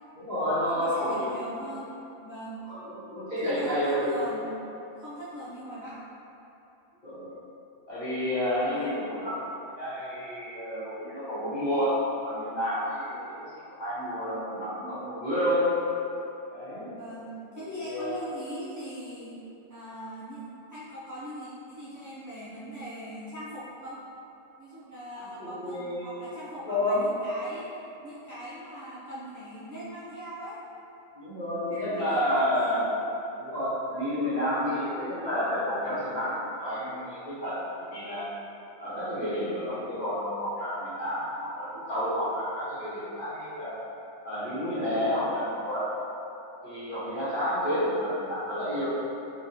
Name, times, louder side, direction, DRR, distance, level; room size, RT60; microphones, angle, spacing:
voice 1, 0.2-1.3 2.6-4.1 7.0-7.3 7.9-9.5 9.8-13.2 13.7-15.7 16.5-16.9 17.5-18.2 25.1-26.2 26.6-27.0 31.2-32.9 33.4-38.3 38.8-43.8 44.2-45.9 46.6-48.9, equal, 40° left, -12 dB, 1.2 m, -30 dB
voice 2, 0.8-1.9 2.2-2.6 3.4-4.5 4.9-6.0 8.7-9.0 16.9-19.4 19.7-24.0 24.6-27.7 28.0-30.6 31.7-32.8, equal, 25° right, -11 dB, 0.4 m, -40 dB
3.7 x 2.9 x 2.8 m, 2.9 s
omnidirectional pair, 1.3 m